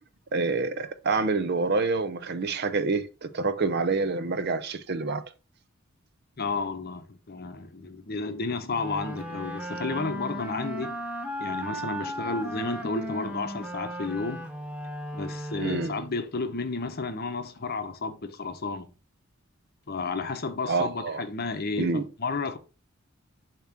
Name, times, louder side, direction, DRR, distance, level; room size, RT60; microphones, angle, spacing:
voice 1, 0.3-5.2 15.6-15.9 20.7-21.2 21.8-22.1, right 4 dB, 55° right, 0.6 m, -27 dB
voice 2, 6.4-11.0 11.4-14.5 15.1-18.9 19.9-22.6, left 3 dB, 50° left, 0.8 m, -32 dB
sound 1, 8.7-16.2, equal, 5° right, 0.9 m, -36 dB
7.0 x 3.0 x 5.9 m
head